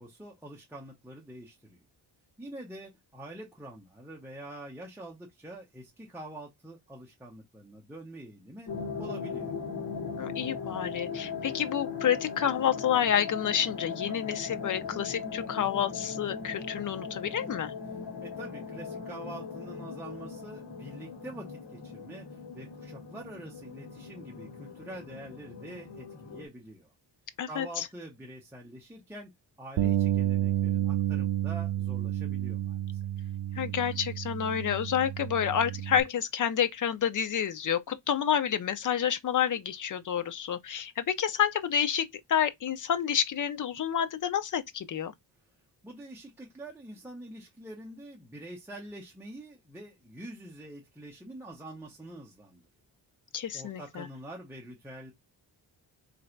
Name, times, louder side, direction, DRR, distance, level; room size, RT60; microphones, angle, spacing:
voice 1, 0.0-1.8 2.4-8.7 9.0-9.5 18.2-26.9 27.5-33.0 45.8-52.6 53.5-55.1, right 1 dB, 5° right, 0.8 m, -45 dB
sound 1, 8.7-26.5, left 5 dB, 65° left, 1.3 m, -39 dB
voice 2, 10.2-17.7 27.4-27.9 33.6-45.1 53.3-54.1, left 9 dB, 45° left, 0.5 m, -29 dB
Bass guitar, 29.8-36.0, right 12 dB, 60° right, 0.5 m, -30 dB
3.1 x 2.6 x 4.4 m
wide cardioid pair, 165°, 46 cm